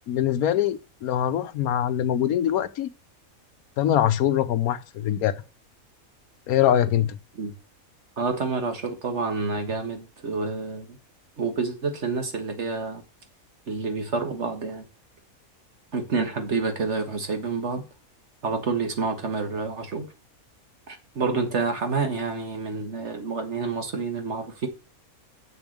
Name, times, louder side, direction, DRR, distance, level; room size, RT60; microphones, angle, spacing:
voice 1, 0.1-2.9 3.8-5.3 6.5-7.2, left 11 dB, 80° left, 1.2 m, -23 dB
voice 2, 8.2-10.9 11.4-13.0 13.7-14.8 15.9-17.8 18.4-20.1 20.9-24.7, right 4 dB, 50° right, 1.7 m, -28 dB
7.0 x 7.0 x 6.4 m
omnidirectional pair, 1.5 m